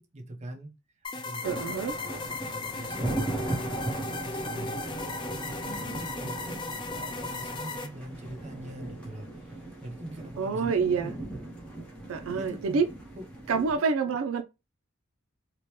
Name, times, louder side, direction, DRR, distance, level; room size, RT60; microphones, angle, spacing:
voice 1, 0.0-1.7 2.2-6.6 7.2-11.2 12.3-12.8 13.2-13.3, right 1 dB, 35° right, 0.7 m, -43 dB
sound 1, 1.0-7.9, left 3 dB, 25° left, 0.4 m, -36 dB
sound 2, 1.4-13.8, right 2 dB, 5° left, 0.8 m, -38 dB
voice 2, 1.4-2.0 10.4-11.1 12.1-12.9 13.5-14.4, right 5 dB, 75° right, 0.4 m, -27 dB
2.9 x 2.1 x 3.1 m
head